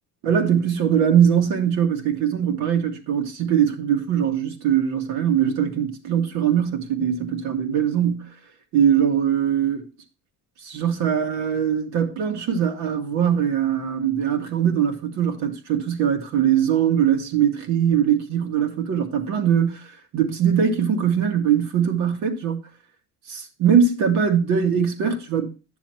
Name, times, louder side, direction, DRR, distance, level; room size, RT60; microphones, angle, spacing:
voice 1, 0.2-8.3 8.7-9.9 10.6-19.8 20.1-22.6 23.3-25.5, right 8 dB, 65° right, 2.1 m, -21 dB
11.5 x 7.0 x 3.0 m
cardioid pair, 150°, 29 cm